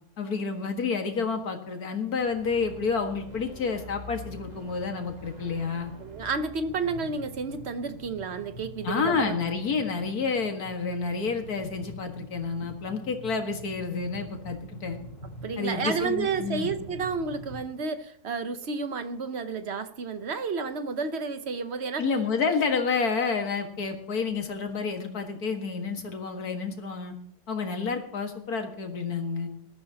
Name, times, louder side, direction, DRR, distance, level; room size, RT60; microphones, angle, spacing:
voice 1, 0.2-5.9 8.8-15.0 15.6-16.7 22.0-27.2 27.5-29.5, left 5 dB, 70° left, 2.2 m, -29 dB
sound 1, 2.1-8.4, equal, 25° right, 1.7 m, -46 dB
voice 2, 6.0-9.3 15.4-22.1, right 4 dB, 50° right, 1.1 m, -31 dB
sound 2, 6.6-17.6, right 1 dB, 35° left, 3.9 m, -45 dB
20.5 x 13.5 x 2.9 m
omnidirectional pair, 1.6 m